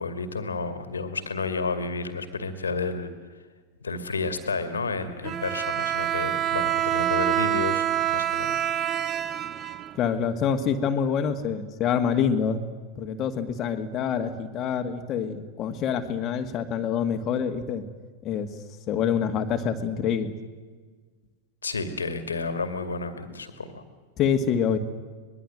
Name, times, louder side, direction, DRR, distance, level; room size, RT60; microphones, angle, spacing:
voice 1, 0.0-3.1 3.8-8.6 21.6-23.8, left 4 dB, 75° left, 9 dB, 2.3 m, -31 dB
Bowed string instrument, 5.2-10.3, right 11 dB, 30° right, 1.1 m, -26 dB
voice 2, 9.9-12.6 13.0-17.8 18.2-18.5 18.9-20.3 24.2-24.8, left 7 dB, 35° left, 7 dB, 2.1 m, -26 dB
24.0 x 21.5 x 8.0 m, 1.4 s
figure-of-eight pair, 90°, 0 cm